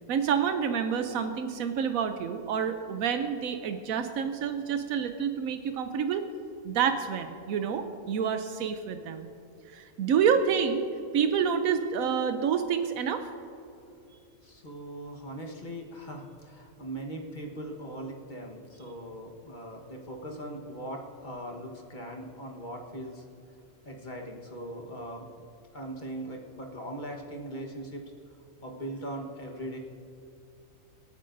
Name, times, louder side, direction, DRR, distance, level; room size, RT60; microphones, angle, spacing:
voice 1, 0.1-6.2 6.6-9.3 9.7-10.9 11.1-13.3, right 7 dB, 85° right, 7 dB, 1.1 m, -28 dB
voice 2, 14.4-23.2 23.8-25.3 25.7-28.0 28.6-29.8, right 1 dB, 35° left, 1 dB, 1.4 m, -40 dB
26.0 x 9.2 x 2.6 m, 2.6 s
omnidirectional pair, 1.4 m